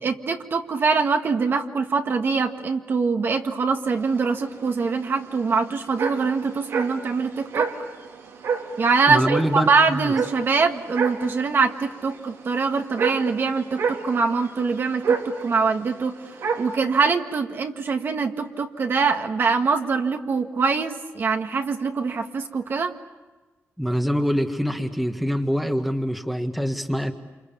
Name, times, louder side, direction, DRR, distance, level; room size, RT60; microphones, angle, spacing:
voice 1, 0.0-7.7 8.8-16.2 16.6-22.9, right 4 dB, 45° right, 4 dB, 1.8 m, -23 dB
sound 1, 3.9-16.8, right 5 dB, 80° right, 3.7 m, -30 dB
voice 2, 9.1-10.2 23.8-27.1, equal, ahead, 5 dB, 1.6 m, -24 dB
28.5 x 27.5 x 7.2 m, 1.2 s
cardioid pair, 125°, 5 cm